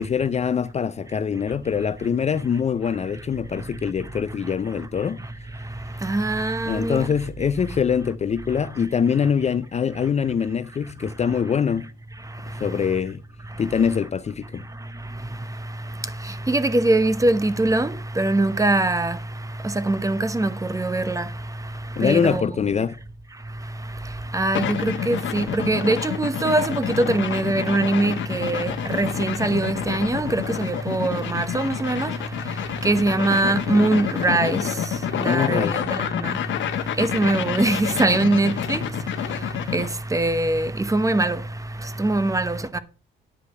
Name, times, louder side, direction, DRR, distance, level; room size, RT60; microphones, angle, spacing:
voice 1, 0.0-5.2 6.7-11.9 12.6-13.2 13.6-14.6 22.0-22.9 35.2-35.7, left 7 dB, 35° left, 0.5 m, -23 dB
voice 2, 6.0-7.1 12.5-12.6 15.6-15.7 16.0-19.2 19.6-21.7 22.0-22.6 24.0-38.9 39.2-41.5 41.8-42.8, right 2 dB, 15° right, 0.9 m, -23 dB
sound 1, 24.5-40.0, left 10 dB, 70° left, 1.0 m, -29 dB
10.0 x 5.0 x 6.6 m
cardioid pair, 90°, 20 cm